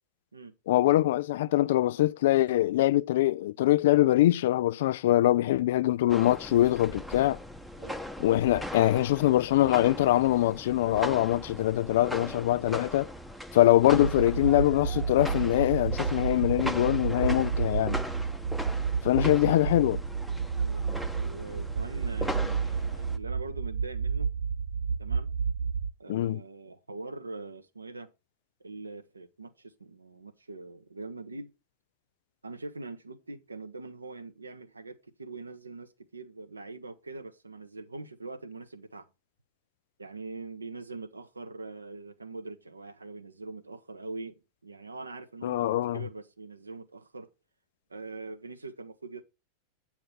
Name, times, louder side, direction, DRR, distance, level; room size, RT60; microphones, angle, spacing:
voice 1, 0.7-7.4 8.2-13.1 13.5-18.0 19.0-20.0 26.1-26.4 45.4-46.0, left 14 dB, 55° left, 0.3 m, -23 dB
sound 1, 6.1-23.2, equal, ahead, 0.8 m, -39 dB
sound 2, 13.9-25.9, right 5 dB, 55° right, 0.6 m, -31 dB
voice 2, 20.5-24.3 25.0-25.3 26.0-28.1 28.6-31.5 32.4-39.1 40.0-47.3 47.9-49.2, right 3 dB, 80° right, 0.9 m, -43 dB
8.8 x 4.7 x 5.4 m
figure-of-eight pair, 90°, 0 cm